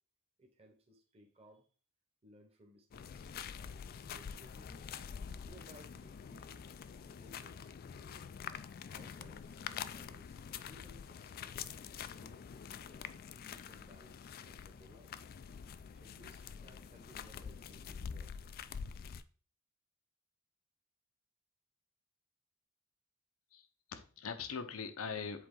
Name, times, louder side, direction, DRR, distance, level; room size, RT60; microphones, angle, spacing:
voice 1, 0.4-1.7 2.2-3.3 3.6-4.9 5.5-6.7 7.1-8.2 8.9-11.5 12.1-15.2 15.4-19.1, equal, 30° right, 2 dB, 1.0 m, -62 dB
sound 1, 2.9-19.2, left 7 dB, 45° left, 0.3 m, -46 dB
voice 2, 23.5-25.5, left 5 dB, 75° left, 9 dB, 0.7 m, -42 dB
7.7 x 3.7 x 3.8 m, 0.40 s
head